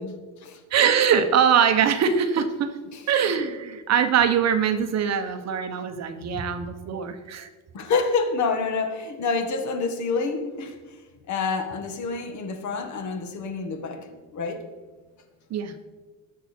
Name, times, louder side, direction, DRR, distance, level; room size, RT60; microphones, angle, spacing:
voice 1, 0.0-0.6 2.9-3.0 7.7-10.8 11.3-14.6, left 4 dB, 45° left, 6 dB, 1.8 m, -28 dB
voice 2, 0.7-2.7 3.1-7.5 15.5-15.7, right 7 dB, 40° right, 8 dB, 1.1 m, -22 dB
19.5 x 7.3 x 4.5 m, 1.3 s
cardioid pair, 150°, 40 cm